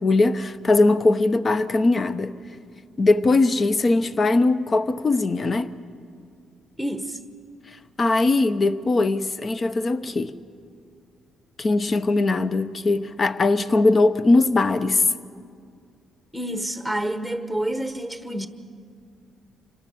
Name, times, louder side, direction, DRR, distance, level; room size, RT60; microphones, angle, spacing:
voice 1, 0.0-2.3 3.0-5.7 8.0-10.4 11.6-15.0, left 2 dB, 35° left, 0.9 m, -20 dB
voice 2, 6.8-7.2 16.3-18.5, right 1 dB, 5° left, 1.2 m, -28 dB
26.0 x 18.0 x 7.1 m
cardioid pair, 90°, 0 cm